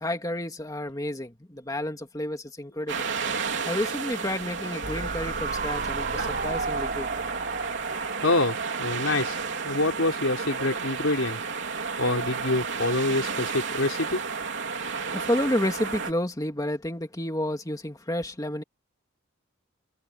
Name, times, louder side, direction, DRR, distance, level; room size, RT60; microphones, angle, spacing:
voice 1, 0.0-3.1 3.6-7.1 15.1-18.6, left 1 dB, 15° left, 2.7 m, -30 dB
sound 1, 2.9-16.1, right 5 dB, 60° right, 3.7 m, -32 dB
sound 2, 4.8-10.1 10.4-10.5, right 3 dB, 45° right, 5.2 m, -34 dB
voice 2, 8.2-9.4 9.6-11.4 12.0-14.2, left 2 dB, 75° left, 3.8 m, -26 dB
head